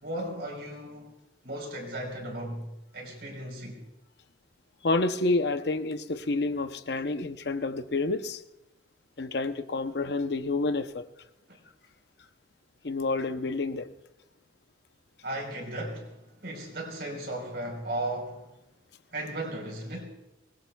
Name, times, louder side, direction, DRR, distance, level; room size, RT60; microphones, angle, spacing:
voice 1, 0.0-1.2 1.4-2.7 2.9-3.8 11.5-11.6 15.2-18.5 19.1-20.0, right 1 dB, 60° right, 4.1 m, -36 dB
voice 2, 4.8-8.4 9.2-11.0 12.8-13.9, left 3 dB, 60° left, 0.7 m, -29 dB
24.5 x 20.5 x 2.3 m
head